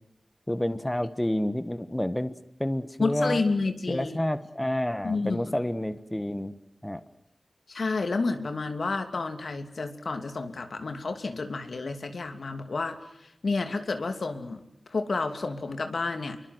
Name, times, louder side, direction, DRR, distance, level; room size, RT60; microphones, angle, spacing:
voice 1, 0.5-2.3 2.6-3.4 3.9-6.6 6.8-7.0, left 1 dB, 15° left, 13 dB, 1.4 m, -29 dB
voice 2, 3.0-4.1 5.0-5.6 7.7-14.6 14.9-16.4, left 3 dB, 90° left, 7 dB, 2.9 m, -30 dB
28.0 x 23.5 x 7.9 m, 0.78 s
wide cardioid pair, 90°, 0 cm